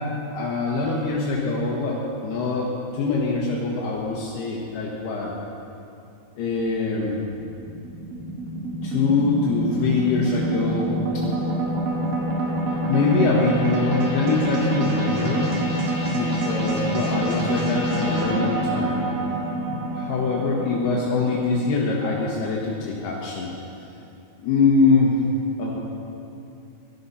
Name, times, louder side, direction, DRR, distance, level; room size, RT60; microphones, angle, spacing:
voice 1, 0.0-5.3 6.4-7.2 8.8-11.2 12.9-15.5 16.1-18.9 19.7-23.5 24.4-25.2 25.6-25.8, left 3 dB, 75° left, -4 dB, 3.5 m, -23 dB
sound 1, 6.6-23.0, right 1 dB, 60° right, 3.6 m, -27 dB
18.0 x 13.0 x 5.7 m, 2.7 s
omnidirectional pair, 4.7 m